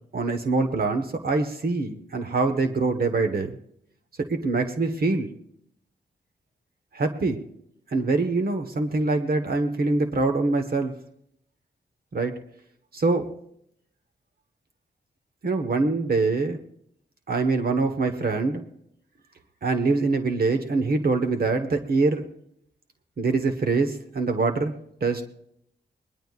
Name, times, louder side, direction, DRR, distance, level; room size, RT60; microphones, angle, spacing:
voice 1, 0.1-3.5 4.3-5.3 6.9-7.4 7.9-10.9 12.1-12.3 12.9-13.3 15.4-16.6 17.3-18.6 19.6-22.3 23.2-24.7 25.0-25.2, right 3 dB, 60° right, 5 dB, 1.3 m, -24 dB
23.5 x 19.5 x 2.5 m, 0.74 s
cardioid pair, 65°, 18 cm